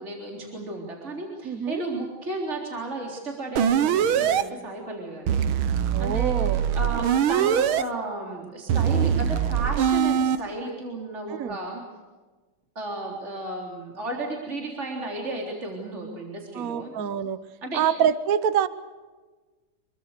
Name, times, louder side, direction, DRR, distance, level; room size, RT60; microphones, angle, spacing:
voice 1, 0.0-11.8 12.8-16.9 17.6-17.8, right 2 dB, 35° right, -1 dB, 4.0 m, -34 dB
voice 2, 1.4-1.8 5.9-6.6 11.3-11.6 16.5-17.4 17.7-18.7, right 8 dB, 50° right, 14 dB, 1.3 m, -25 dB
sound 1, 3.6-4.4 5.3-7.8 8.7-10.4, right 9 dB, 85° right, 1.8 m, -22 dB
26.5 x 23.0 x 6.7 m, 1.3 s
omnidirectional pair, 2.2 m